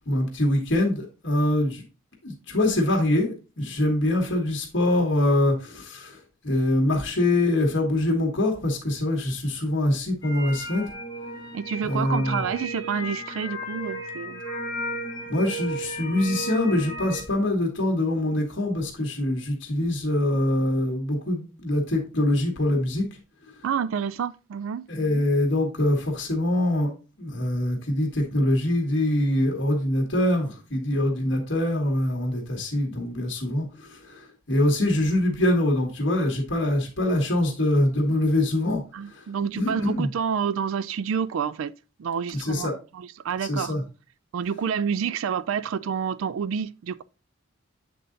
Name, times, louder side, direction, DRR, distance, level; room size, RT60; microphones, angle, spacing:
voice 1, 0.0-1.8 2.2-10.8 11.9-12.5 15.3-23.0 23.4-23.7 24.9-26.9 27.2-40.1 42.3-42.8 43.4-43.8, left 1 dB, 65° left, 1.5 m, -24 dB
sound 1, 10.2-17.2, right 1 dB, 20° left, 1.4 m, -34 dB
voice 2, 11.5-14.4 23.6-24.9 38.9-41.7 42.0-42.7 43.2-43.7 44.3-47.0, right 7 dB, 80° right, 0.3 m, -28 dB
7.7 x 3.8 x 3.8 m
head